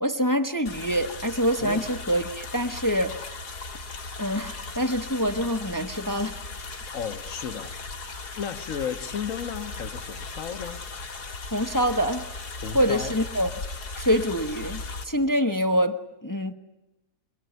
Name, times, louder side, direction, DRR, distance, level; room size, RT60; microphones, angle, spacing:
voice 1, 0.0-3.4 4.2-6.4 11.5-12.3 12.7-13.5 14.0-16.5, equal, 15° left, 0.9 m, -25 dB
sound 1, 0.7-15.1, left 3 dB, 80° left, 2.6 m, -37 dB
voice 2, 6.9-7.8 8.4-10.8 12.6-13.1, left 7 dB, 60° left, 1.6 m, -34 dB
26.5 x 22.5 x 9.4 m
omnidirectional pair, 1.7 m